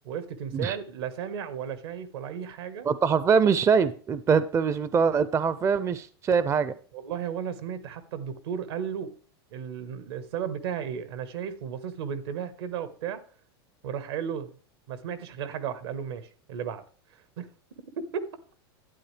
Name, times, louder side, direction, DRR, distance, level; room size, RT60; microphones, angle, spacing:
voice 1, 0.0-2.9 6.9-9.1 9.5-13.2 13.8-14.5 14.9-16.8 17.4-17.5 18.0-18.3, right 8 dB, 75° right, 1.4 m, -34 dB
voice 2, 2.9-6.7, right 6 dB, 20° right, 0.5 m, -23 dB
12.0 x 8.8 x 3.3 m
hypercardioid pair, 115°, 13 cm